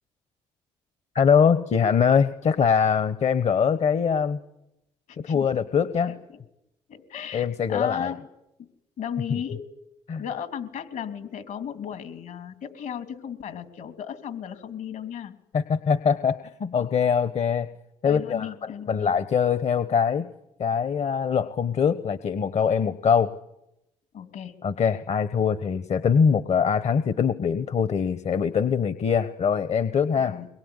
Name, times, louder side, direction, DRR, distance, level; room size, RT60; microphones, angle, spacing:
voice 1, 1.1-4.4 5.2-6.1 7.3-8.1 9.3-9.4 10.1-10.2 15.5-17.7 18.0-18.5 18.9-20.3 20.6-23.3 24.6-30.3, left 6 dB, 55° left, 13 dB, 1.3 m, -23 dB
voice 2, 5.3-5.6 6.1-6.4 6.9-8.2 8.6-8.7 9.0-9.6 10.2-15.3 16.8-16.9 18.0-19.1 24.1-24.5 30.2-30.5, left 8 dB, 70° left, 9 dB, 3.2 m, -35 dB
23.0 x 22.5 x 9.9 m, 0.86 s
supercardioid pair, 65°, 14 cm